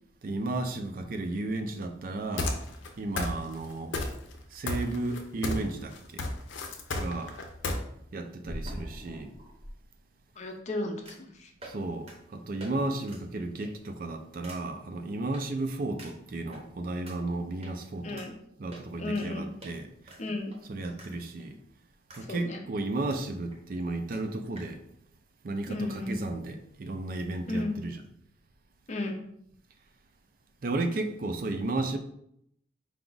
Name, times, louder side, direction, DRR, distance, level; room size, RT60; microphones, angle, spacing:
voice 1, 0.2-2.6 3.0-4.0 4.5-6.2 6.9-7.4 8.1-9.3 11.6-18.2 18.6-19.9 20.7-21.6 22.2-24.8 25.4-28.0 30.6-32.0, right 2 dB, 50° right, 7 dB, 0.4 m, -33 dB
sound 1, 2.4-2.9 3.2-3.7 3.9-4.4 4.7-5.7 6.0-7.8, left 2 dB, 85° left, 0.6 m, -31 dB
sound 2, 8.4-9.7 11.1-11.3 11.6-11.8 12.1-12.2 12.6-12.7 13.0-13.2 13.6-13.9 14.4-14.6 15.3-15.4 16.0-16.6 17.1-17.2 17.6-17.7 18.2-18.3 18.7-19.3 19.6-19.7 20.1-21.1 21.4-21.5 22.1-22.2 22.5-23.2 23.5-23.6 23.8-23.9 24.1-24.2 24.6-24.7, equal, 30° right, 0.8 m, -44 dB
voice 2, 10.4-11.5 18.0-18.3 19.0-19.5 20.2-20.5 22.3-22.6 25.7-26.2 27.5-27.7 28.9-29.2, left 2 dB, 35° left, 4 dB, 0.5 m, -33 dB
4.8 x 2.3 x 3.8 m, 0.73 s
head